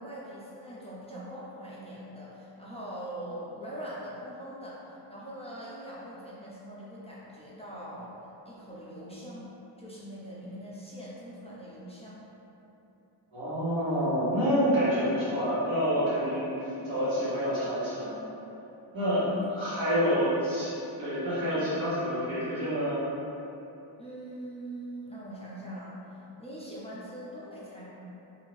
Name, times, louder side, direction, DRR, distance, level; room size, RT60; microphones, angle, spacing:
voice 1, 0.0-9.5 9.8-12.3 18.9-19.4 19.9-20.0 24.0-27.9, right 1 dB, 15° left, -8 dB, 0.5 m, -42 dB
voice 2, 13.3-18.2 18.9-19.2 19.6-23.0, equal, 85° right, -11 dB, 1.3 m, -28 dB
2.7 x 2.4 x 3.1 m, 3.0 s
wide cardioid pair, 105°, 46 cm